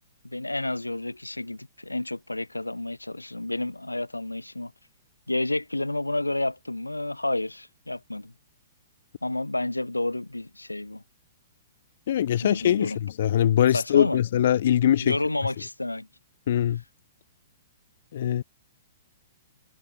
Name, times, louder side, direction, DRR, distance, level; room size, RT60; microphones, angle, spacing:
voice 1, 0.2-4.7 5.3-8.3 9.2-11.0 12.4-13.0 13.7-14.2 15.0-16.1, left 2 dB, 85° left, 1.4 m, -30 dB
voice 2, 12.1-15.2 16.5-16.8 18.1-18.4, left 11 dB, 50° left, 1.1 m, -22 dB
figure-of-eight pair, 115°, 0 cm